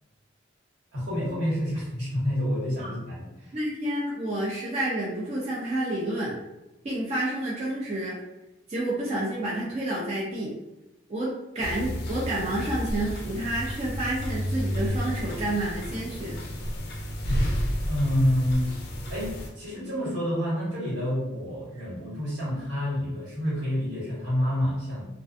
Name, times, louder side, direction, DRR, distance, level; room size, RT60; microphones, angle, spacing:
voice 1, 0.9-3.6 17.9-18.6 19.1-25.1, equal, 75° right, -8 dB, 1.4 m, -28 dB
voice 2, 3.5-6.4 6.8-8.2 8.7-10.5 11.1-16.4, right 1 dB, 35° right, -6 dB, 0.4 m, -29 dB
sound 1, 11.6-19.5, equal, 55° left, 0.4 m, -31 dB
2.3 x 2.3 x 2.5 m, 0.98 s
head